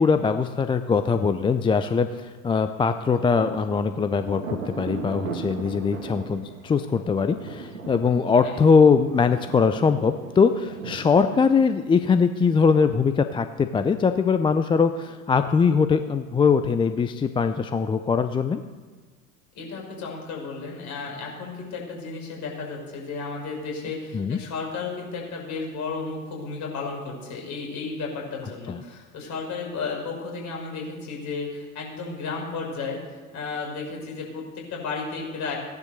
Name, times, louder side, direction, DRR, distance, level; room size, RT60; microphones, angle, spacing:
voice 1, 0.0-18.6 24.1-24.4 28.7-28.8, left 5 dB, 10° left, 9 dB, 0.5 m, -21 dB
Thunder, 3.0-12.3, right 4 dB, 75° right, 2.3 m, -38 dB
voice 2, 19.5-33.0 33.3-35.6, left 4 dB, 40° left, -1 dB, 5.8 m, -33 dB
16.5 x 10.5 x 6.7 m, 1.4 s
figure-of-eight pair, 80°, 43 cm